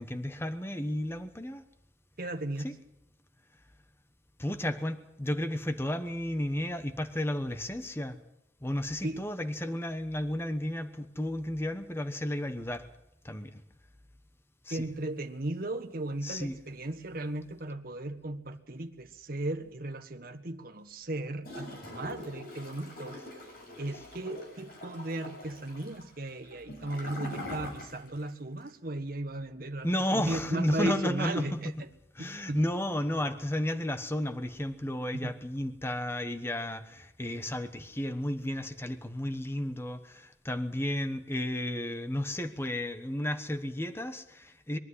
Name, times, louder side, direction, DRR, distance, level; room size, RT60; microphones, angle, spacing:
voice 1, 0.0-1.6 2.6-2.7 4.4-8.2 8.6-12.9 13.2-13.6 14.6-14.9 16.2-16.6 29.8-31.6 32.2-44.8, left 1 dB, 15° left, 1.1 m, -33 dB
voice 2, 2.2-2.8 9.0-9.2 14.7-23.4 23.8-31.9 32.2-32.6 35.2-35.3, right 1 dB, 55° right, 1.5 m, -36 dB
Gurgling / Toilet flush, 21.4-28.3 28.6-28.7, left 1 dB, 55° left, 6.9 m, -43 dB
22.5 x 12.5 x 9.8 m
head